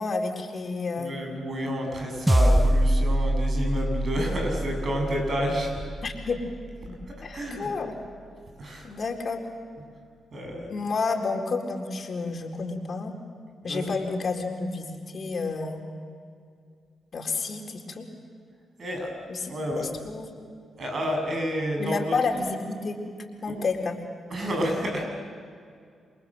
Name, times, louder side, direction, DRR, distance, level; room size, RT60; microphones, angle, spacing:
voice 1, 0.0-1.2 6.0-6.4 6.9-7.9 8.8-9.4 10.7-13.1 13.6-15.8 17.1-18.1 19.3-20.3 21.8-23.0 23.4-24.0, left 4 dB, 50° left, 2 dB, 4.1 m, -30 dB
voice 2, 1.0-5.7 7.1-7.7 8.6-8.9 10.3-10.7 13.6-13.9 18.8-19.1 19.5-19.9 20.8-22.2 23.5-23.6 24.3-25.1, equal, 55° right, 2 dB, 7.7 m, -30 dB
sound 1, 2.3-6.8, right 1 dB, 10° right, 1.2 m, -25 dB
28.5 x 23.0 x 7.8 m, 2.2 s
hypercardioid pair, 40°, 0 cm